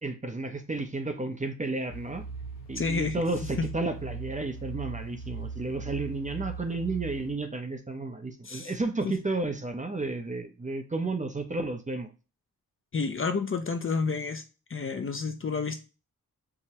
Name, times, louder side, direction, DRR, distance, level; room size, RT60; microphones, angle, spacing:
voice 1, 0.0-2.2 2.7-12.1, right 2 dB, 20° right, 6 dB, 0.6 m, -32 dB
sound 1, 1.9-7.3, right 4 dB, 85° left, 0.9 m, -39 dB
voice 2, 2.8-3.2 3.6-3.7 8.4-8.7 9.0-9.1 12.9-14.4 14.7-15.8, left 4 dB, 35° left, 7 dB, 0.5 m, -30 dB
4.8 x 2.1 x 2.8 m, 0.32 s
cardioid pair, 55°, 37 cm